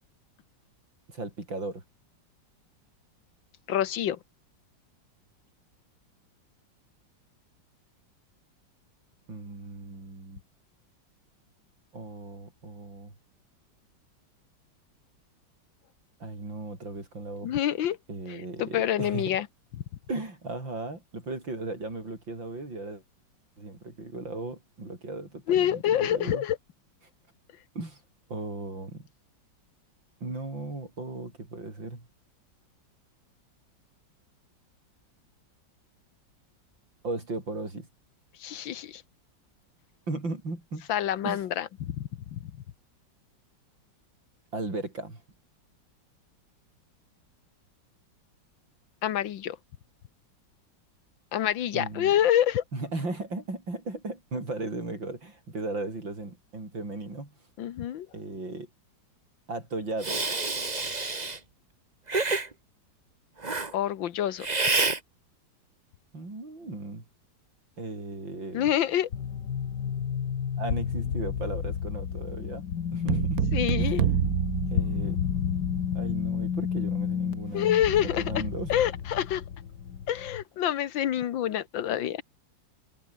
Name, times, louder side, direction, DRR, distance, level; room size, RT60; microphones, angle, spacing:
voice 1, 1.1-1.8 9.3-10.4 11.9-13.1 16.2-17.6 18.1-19.4 20.1-23.0 23.6-26.4 27.7-28.0 28.3-29.1 30.2-32.1 37.0-37.9 40.1-40.9 41.2-41.4 44.5-45.2 51.7-52.1 52.7-57.3 58.1-58.7 59.5-60.2 66.1-67.1 67.8-68.7 70.6-73.5 73.8-74.0 74.7-75.2 75.9-78.7, right 2 dB, 85° right, 7.7 m, -36 dB
voice 2, 3.7-4.2 17.4-18.0 18.6-19.5 25.5-26.6 38.4-39.0 40.9-42.4 49.0-49.6 51.3-52.6 57.6-58.1 63.7-64.5 68.5-69.1 73.5-74.1 77.5-78.4 78.7-79.4 80.1-82.2, left 11 dB, 85° left, 1.8 m, -27 dB
Hiss, 60.0-61.4 62.1-62.5 63.4-63.7 64.4-65.0, right 3 dB, 25° right, 1.7 m, -27 dB
sound 1, 69.1-80.4, left 8 dB, 65° left, 2.0 m, -31 dB
sound 2, 73.1-75.6, right 11 dB, 60° right, 1.2 m, -27 dB
open air
omnidirectional pair, 2.0 m